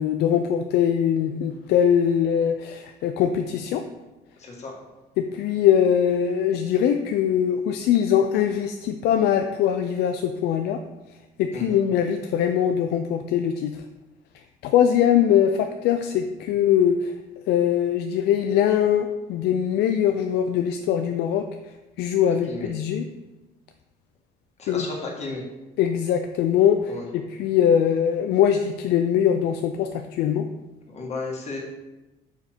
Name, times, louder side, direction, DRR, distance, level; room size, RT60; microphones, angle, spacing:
voice 1, 0.0-3.8 5.2-10.8 11.4-13.7 14.6-17.1 17.5-21.5 22.0-23.1 24.7-24.9 25.8-30.5, left 9 dB, 75° left, 6 dB, 0.4 m, -22 dB
voice 2, 4.4-4.7 11.5-11.8 22.5-22.7 24.6-25.4 26.9-27.1 30.9-31.6, left 3 dB, 40° left, -1 dB, 1.5 m, -33 dB
5.3 x 4.4 x 4.5 m, 1.1 s
cardioid pair, 110°, 17 cm